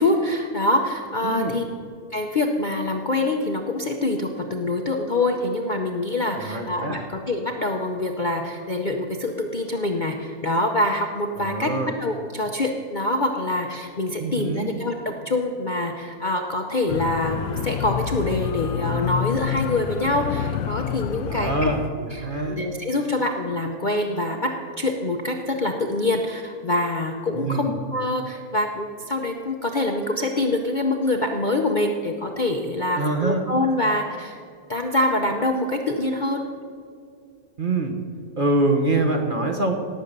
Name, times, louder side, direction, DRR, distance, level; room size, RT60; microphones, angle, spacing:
voice 1, 0.0-1.6 2.1-11.7 12.0-21.7 22.1-34.4 34.7-36.5, left 2 dB, 40° left, 3 dB, 0.7 m, -25 dB
voice 2, 1.2-1.6 6.3-7.0 11.4-11.9 14.2-14.7 21.3-22.6 27.3-27.7 33.0-33.4 37.6-37.9 38.4-39.7, right 2 dB, 35° right, 4 dB, 1.2 m, -24 dB
sound 1, 16.9-21.9, left 9 dB, 70° left, 1.0 m, -28 dB
18.0 x 7.4 x 6.7 m, 2.2 s
omnidirectional pair, 1.7 m